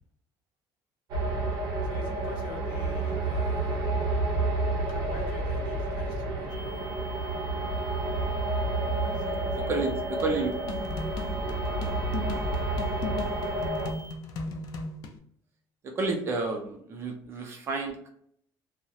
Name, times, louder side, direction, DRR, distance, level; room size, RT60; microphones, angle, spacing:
sound 1, 1.1-13.9, right 2 dB, 50° right, 0.7 m, -30 dB
voice 1, 1.8-3.7 4.9-6.9 9.0-9.9, left 3 dB, 75° left, 2 dB, 0.7 m, -45 dB
sound 2, 6.5-14.1, right 1 dB, 5° right, 0.8 m, -48 dB
voice 2, 9.7-10.6 15.8-18.1, right 3 dB, 30° right, 3 dB, 0.4 m, -30 dB
sound 3, 10.2-15.2, left 3 dB, 45° left, 0.4 m, -37 dB
2.3 x 2.0 x 2.7 m, 0.68 s
cardioid pair, 180°, 8 cm